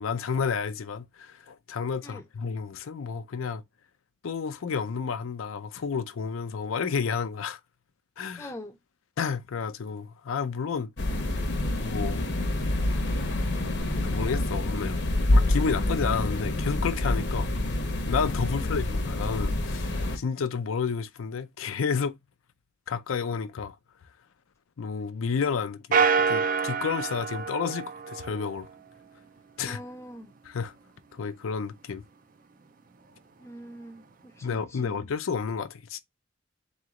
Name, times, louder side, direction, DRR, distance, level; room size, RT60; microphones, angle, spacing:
voice 1, 0.0-3.6 4.2-7.6 8.2-8.5 9.2-10.9 11.8-12.2 14.1-15.0 15.3-17.5 18.1-22.2 22.9-23.8 24.8-28.7 29.6-29.8 30.5-30.7 31.1-32.0 34.4-36.0, left 6 dB, 80° left, 0.5 m, -31 dB
voice 2, 8.4-8.8 18.5-18.7 29.6-30.3 33.4-35.0, equal, 15° left, 0.5 m, -43 dB
sound 1, 11.0-20.2, left 1 dB, 55° left, 0.8 m, -27 dB
sound 2, 25.9-28.6, right 5 dB, 40° right, 0.4 m, -26 dB
3.8 x 3.1 x 3.6 m
head